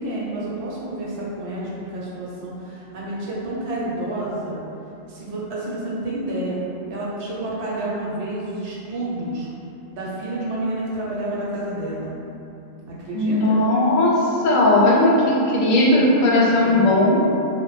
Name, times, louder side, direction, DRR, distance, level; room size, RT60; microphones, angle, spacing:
voice 1, 0.0-4.6 5.1-6.6 6.9-9.5 9.9-12.1 12.9-13.6 15.3-15.5 15.9-16.0 16.6-17.1, right 1 dB, 65° right, -6 dB, 0.9 m, -29 dB
voice 2, 13.1-17.3, left 1 dB, 90° left, -4 dB, 1.0 m, -17 dB
2.2 x 2.0 x 3.1 m, 2.8 s
omnidirectional pair, 1.3 m